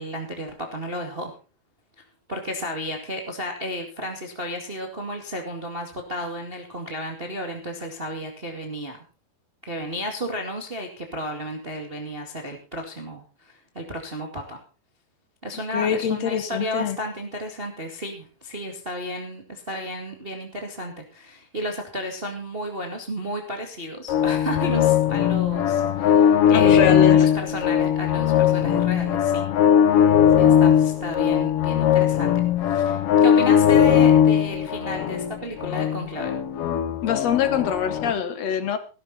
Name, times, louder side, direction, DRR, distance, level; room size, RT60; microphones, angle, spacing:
voice 1, 0.0-1.3 2.0-9.0 9.6-14.6 15.4-29.5 30.4-32.3 32.6-36.3, equal, 20° right, 3 dB, 1.6 m, -32 dB
voice 2, 15.7-17.0 26.5-27.3 37.0-38.8, left 8 dB, 65° left, 11 dB, 1.8 m, -24 dB
sound 1, 24.1-38.1, left 9 dB, 85° left, 1.3 m, -19 dB
17.0 x 12.5 x 4.1 m, 0.33 s
omnidirectional pair, 4.3 m